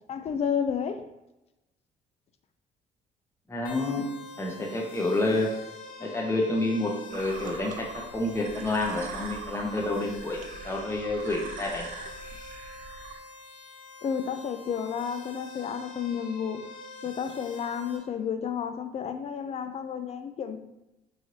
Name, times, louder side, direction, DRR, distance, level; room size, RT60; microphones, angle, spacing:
voice 1, 0.1-1.0 14.0-16.6 17.0-20.6, left 7 dB, 40° left, 9 dB, 0.4 m, -31 dB
voice 2, 3.5-4.1 4.4-5.5 6.0-7.8 8.1-11.9, left 2 dB, 15° left, -1 dB, 0.8 m, -29 dB
sound 1, 3.6-18.0, left 2 dB, 65° left, 1.3 m, -45 dB
sound 2, 7.1-13.2, right 4 dB, 60° right, 0.4 m, -42 dB
3.2 x 2.7 x 2.7 m, 0.95 s
supercardioid pair, 75°, 16 cm